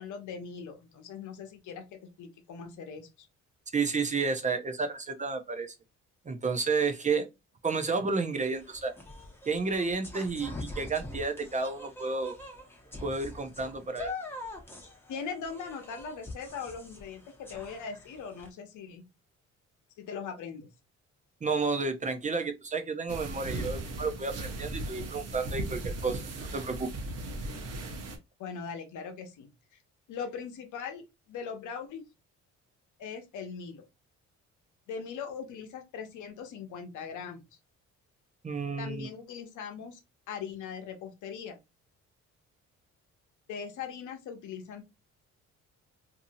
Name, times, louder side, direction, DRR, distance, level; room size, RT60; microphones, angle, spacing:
voice 1, 0.0-3.3 15.1-19.0 20.0-20.7 28.4-29.8 30.1-32.0 33.0-33.8 34.9-37.4 38.8-40.0 40.3-41.6 43.5-44.8, left 6 dB, 75° left, 0.8 m, -40 dB
voice 2, 3.7-5.7 6.3-7.3 7.6-8.9 9.5-12.4 13.0-14.1 21.4-26.9 38.4-39.1, right 4 dB, 25° right, 0.5 m, -31 dB
sound 1, 8.3-18.5, left 2 dB, 10° left, 0.9 m, -44 dB
sound 2, 23.1-28.2, right 2 dB, 55° right, 0.8 m, -37 dB
2.7 x 2.7 x 2.6 m
cardioid pair, 90°, 30 cm